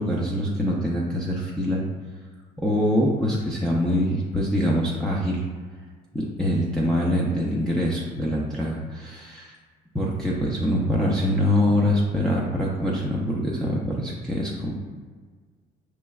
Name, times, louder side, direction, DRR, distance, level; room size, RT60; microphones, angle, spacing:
voice 1, 0.0-1.8 2.6-5.4 6.1-9.6 9.9-14.7, equal, 5° left, -6 dB, 0.5 m, -24 dB
5.6 x 3.2 x 2.3 m, 1.5 s
cardioid pair, 110°, 17 cm